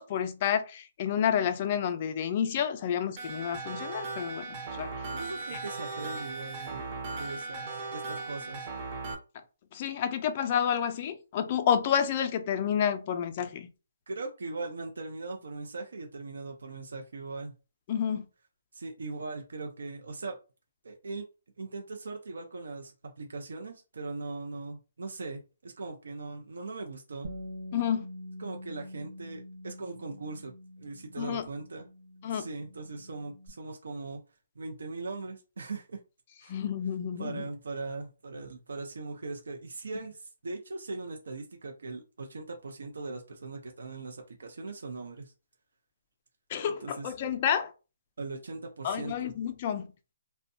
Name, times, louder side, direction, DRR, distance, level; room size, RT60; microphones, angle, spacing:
voice 1, 0.0-4.5 4.7-4.9 9.7-13.7 17.9-18.3 27.7-28.1 31.2-31.4 32.2-32.5 36.5-37.5 46.5-47.7 48.8-49.9, left 8 dB, 30° left, 0.4 m, -29 dB
sound 1, 3.2-9.1, right 3 dB, 25° right, 0.6 m, -38 dB
voice 2, 5.1-8.7 14.1-17.5 18.7-20.4 20.8-21.2 21.6-27.3 28.4-31.9 32.3-34.2 34.6-36.0 36.4-36.6 37.2-45.3 46.7-47.1 48.2-49.3, right 3 dB, 80° right, 0.5 m, -40 dB
Bass guitar, 27.2-33.5, equal, 50° right, 0.9 m, -45 dB
2.6 x 2.1 x 2.6 m
hypercardioid pair, 170°, 0 cm